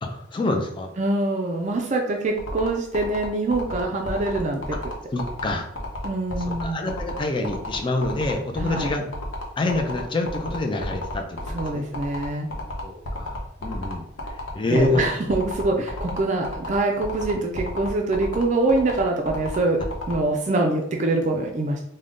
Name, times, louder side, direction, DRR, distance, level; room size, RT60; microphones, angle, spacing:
voice 1, 0.0-0.9 5.1-5.7 6.5-9.0 9.6-11.8 12.8-15.1, left 2 dB, 25° left, 3 dB, 0.4 m, -27 dB
voice 2, 1.0-4.8 6.0-6.8 8.6-8.9 11.5-12.5 14.7-19.8 20.1-21.8, right 2 dB, 40° right, 1 dB, 0.4 m, -24 dB
sound 1, 2.4-20.1, left 2 dB, 85° left, 0.8 m, -33 dB
3.6 x 2.1 x 3.7 m, 0.74 s
head